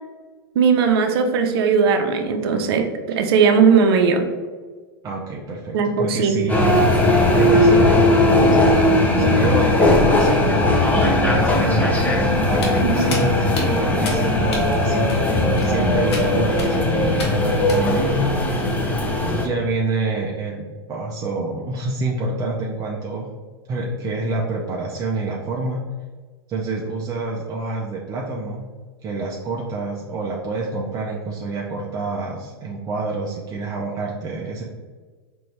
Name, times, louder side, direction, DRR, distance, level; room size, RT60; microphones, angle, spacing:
voice 1, 0.6-4.2 5.7-6.4 12.8-13.0, right 6 dB, 65° right, 6 dB, 0.6 m, -18 dB
voice 2, 5.0-6.8 7.3-15.2 15.6-18.3 19.2-23.3 23.7-25.8 26.5-28.7 29.0-34.6, right 3 dB, 25° right, -3 dB, 0.5 m, -27 dB
sound 1, 6.5-19.5, left 1 dB, 10° left, 0.7 m, -18 dB
Walk footsteps, 12.5-18.1, left 1 dB, 85° left, 1.1 m, -32 dB
4.3 x 2.6 x 3.2 m, 1.4 s
hypercardioid pair, 120°, 13 cm